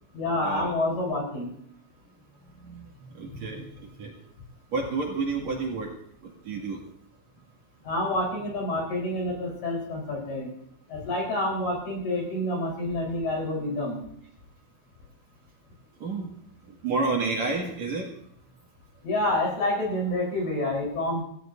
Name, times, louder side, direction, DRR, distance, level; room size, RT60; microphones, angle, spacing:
voice 1, 0.1-1.6 7.8-10.5 10.9-14.0 19.0-21.2, left 1 dB, 45° left, -1 dB, 5.3 m, -28 dB
voice 2, 3.1-4.2 4.7-5.9 6.2-6.8 16.0-16.3 16.8-18.1, right 3 dB, 50° right, -1 dB, 2.4 m, -30 dB
25.5 x 15.5 x 2.6 m, 0.69 s
omnidirectional pair, 5.6 m